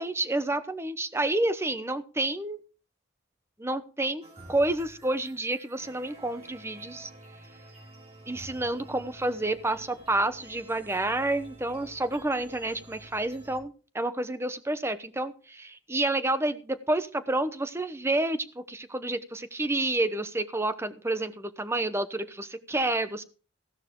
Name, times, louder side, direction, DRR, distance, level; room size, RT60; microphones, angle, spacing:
voice 1, 0.0-2.6 3.6-4.2 4.5-7.1 8.3-23.2, right 2 dB, 15° right, 11 dB, 0.9 m, -29 dB
sound 1, 4.2-13.6, right 1 dB, 30° right, 3.7 m, -50 dB
15.5 x 11.5 x 3.8 m, 0.37 s
head